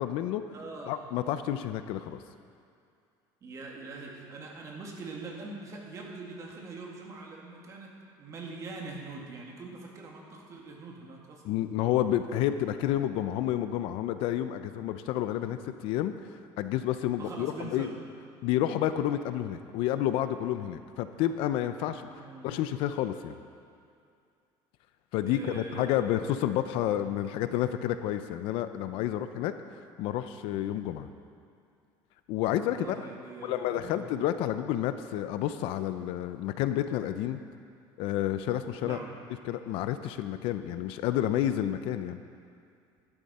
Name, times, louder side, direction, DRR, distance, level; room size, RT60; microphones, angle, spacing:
voice 1, 0.0-0.4 0.9-2.2 11.4-16.1 16.6-17.9 18.4-22.0 22.4-23.4 25.1-29.5 30.0-31.1 32.3-33.0 33.4-37.4 38.0-39.0 39.4-42.2, left 12 dB, 65° left, 10 dB, 0.6 m, -30 dB
voice 2, 0.5-1.0 3.4-11.6 17.2-18.0 22.0-22.5 25.2-26.0 26.8-27.2 32.6-34.1 38.8-39.1, right 3 dB, 35° right, -1 dB, 2.1 m, -43 dB
13.0 x 11.5 x 4.3 m, 2.4 s
cardioid pair, 145°, 10 cm